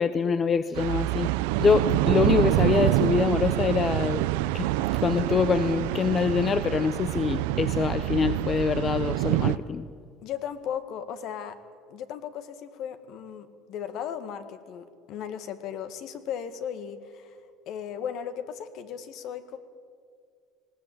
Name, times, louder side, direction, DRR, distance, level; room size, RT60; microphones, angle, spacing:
voice 1, 0.0-1.3 1.6-4.3 4.5-9.9, left 5 dB, 30° left, 13 dB, 0.7 m, -25 dB
sound 1, 0.7-9.6, right 16 dB, 90° right, 0.5 m, -26 dB
voice 2, 10.2-11.6 11.9-17.4 17.7-19.6, left 8 dB, 60° left, 11 dB, 1.8 m, -36 dB
20.0 x 16.5 x 8.8 m, 2.1 s
cardioid pair, 120°, 0 cm